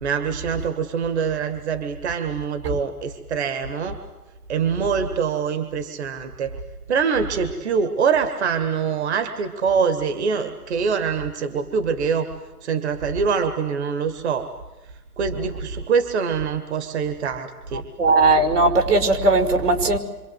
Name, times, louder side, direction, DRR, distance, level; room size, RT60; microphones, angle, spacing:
voice 1, 0.0-4.0 4.5-6.6 6.9-12.3 12.6-14.5 15.2-17.8, right 6 dB, 45° right, 8 dB, 1.9 m, -24 dB
voice 2, 18.0-20.0, right 2 dB, 70° right, 7 dB, 5.6 m, -18 dB
27.5 x 26.0 x 8.1 m, 1.1 s
hypercardioid pair, 165°, 48 cm